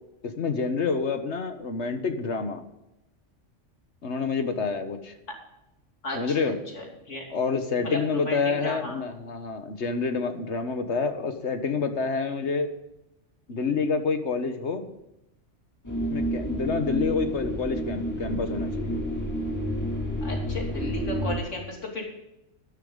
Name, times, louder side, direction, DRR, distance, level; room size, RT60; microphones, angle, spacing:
voice 1, 0.2-2.6 4.0-5.1 6.1-6.6 7.3-12.7 13.5-14.8 16.0-19.0, left 4 dB, 70° left, 7 dB, 1.7 m, -28 dB
voice 2, 6.0-7.3 7.8-9.0 20.2-22.1, left 1 dB, 85° left, 0 dB, 3.2 m, -34 dB
sound 1, 15.8-21.4, equal, 15° left, 2.5 m, -30 dB
12.5 x 11.5 x 3.9 m, 0.89 s
omnidirectional pair, 1.2 m